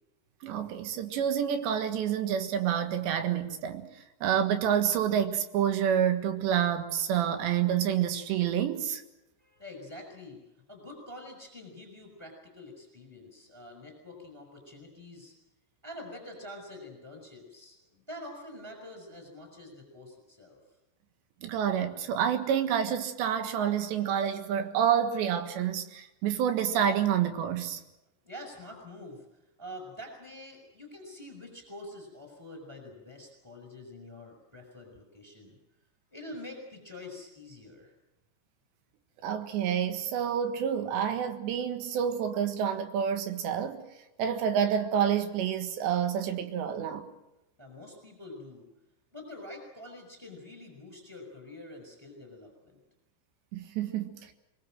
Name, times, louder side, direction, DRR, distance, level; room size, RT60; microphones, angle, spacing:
voice 1, 0.4-3.9 4.2-9.0 21.4-27.8 39.2-43.8 44.2-47.1 53.5-54.3, right 9 dB, 70° right, 3.7 m, -28 dB
voice 2, 9.4-15.3 15.8-20.6 28.2-29.2 29.6-35.6 36.1-37.9 47.6-48.7 49.1-52.8, left 1 dB, 5° right, 5.2 m, -46 dB
24.0 x 22.0 x 7.7 m
omnidirectional pair, 5.4 m